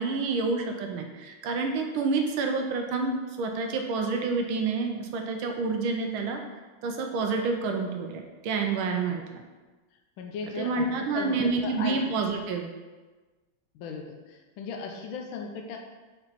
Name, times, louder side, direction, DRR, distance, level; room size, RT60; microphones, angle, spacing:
voice 1, 0.0-6.4 6.8-9.4 10.6-12.7, right 4 dB, 80° right, 3 dB, 1.4 m, -28 dB
voice 2, 10.2-12.0 13.7-15.8, left 5 dB, 75° left, 2 dB, 1.4 m, -37 dB
5.4 x 4.5 x 4.0 m, 1.3 s
omnidirectional pair, 2.3 m